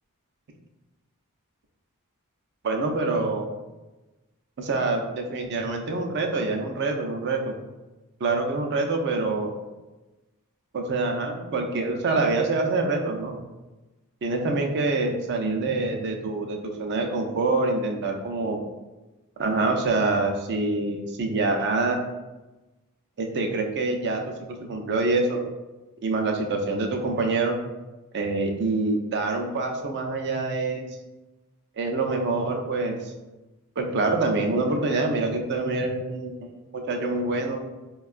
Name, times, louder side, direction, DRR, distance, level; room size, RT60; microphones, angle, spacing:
voice 1, 2.6-3.5 4.6-7.5 8.2-9.5 10.7-13.4 14.2-18.6 19.4-22.0 23.2-24.2 24.7-25.4 26.0-27.6 28.1-30.9 31.8-33.1 33.8-37.6, right 3 dB, 50° right, 3 dB, 0.4 m, -26 dB
4.4 x 2.2 x 2.4 m, 1.1 s
head